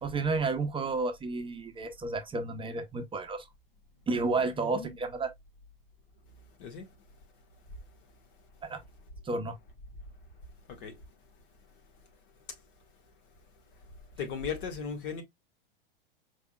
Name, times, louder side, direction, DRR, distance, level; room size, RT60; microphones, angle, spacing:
voice 1, 0.0-3.5 4.1-5.3 8.6-8.8 9.2-9.5, right 3 dB, 20° right, 0.7 m, -31 dB
voice 2, 4.6-5.0 6.6-6.9 10.8-10.9 14.2-15.2, left 6 dB, 60° left, 1.7 m, -36 dB
4.8 x 3.4 x 2.3 m
hypercardioid pair, 95°, 29 cm